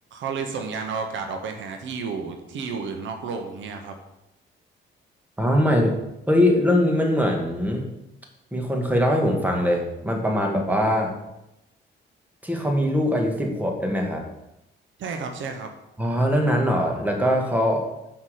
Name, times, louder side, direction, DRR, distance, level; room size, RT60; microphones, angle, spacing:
voice 1, 0.1-3.9 15.0-15.7, right 5 dB, 75° right, 5 dB, 1.1 m, -31 dB
voice 2, 5.4-6.0 6.3-7.9 8.5-11.1 12.4-14.2 16.0-17.9, equal, 10° right, 1 dB, 1.7 m, -22 dB
5.9 x 5.6 x 6.5 m, 0.91 s
cardioid pair, 90°, 20 cm